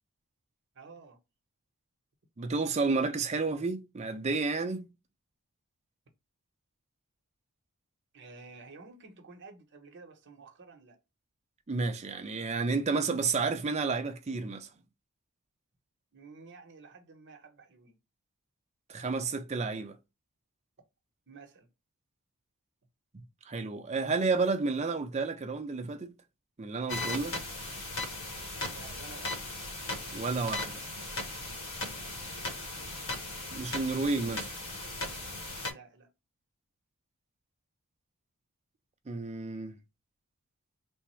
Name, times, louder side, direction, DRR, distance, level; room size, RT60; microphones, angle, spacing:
voice 1, 0.7-1.2 8.1-11.0 16.1-18.0 21.3-21.7 28.7-29.4 35.6-36.1, right 4 dB, 55° right, 0.9 m, -51 dB
voice 2, 2.4-4.9 11.7-14.7 18.9-20.0 23.1-26.1 26.6-27.4 30.1-30.8 33.5-34.5 39.1-39.8, right 4 dB, 30° right, 0.5 m, -31 dB
sound 1, 26.9-35.7, left 2 dB, 65° left, 1.2 m, -37 dB
3.5 x 2.0 x 4.3 m
head